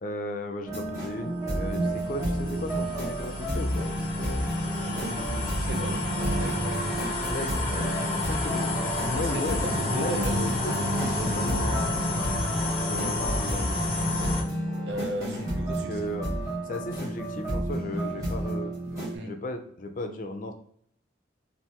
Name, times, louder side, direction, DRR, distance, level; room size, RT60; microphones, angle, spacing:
voice 1, 0.0-3.9 7.3-7.6 8.2-8.8 9.1-11.9 12.8-13.7 15.9-16.3 16.7-18.7 19.2-20.5, left 1 dB, 45° left, 0.4 m, -35 dB
sound 1, 0.7-19.2, equal, 20° right, 1.4 m, -31 dB
sound 2, 0.9-14.4, left 2 dB, 25° left, 0.9 m, -31 dB
voice 2, 4.8-6.6 7.7-8.2 9.1-10.4 14.9-16.0 19.1-19.3, right 1 dB, 60° right, 0.5 m, -36 dB
sound 3, 11.1-11.7 12.1-12.2 12.5-12.6 12.9-14.6 14.9-15.8 16.0-17.7 18.0-18.5 18.8-19.0, right 1 dB, 40° right, 1.3 m, -44 dB
3.4 x 2.5 x 2.8 m
head